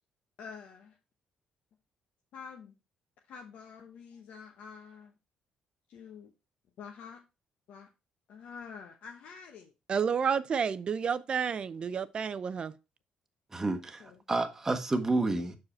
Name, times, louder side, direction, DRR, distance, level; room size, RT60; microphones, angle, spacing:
voice 1, 0.4-1.0 2.3-2.7 3.3-5.1 5.9-6.3 6.8-7.2 7.7-7.9 8.3-9.7 14.0-14.2, left 6 dB, 70° left, 1.0 m, -47 dB
voice 2, 9.9-12.7, right 6 dB, 40° right, 0.5 m, -30 dB
voice 3, 13.5-15.6, right 2 dB, 20° right, 1.0 m, -30 dB
6.3 x 4.9 x 4.2 m
cardioid pair, 105°, 2 cm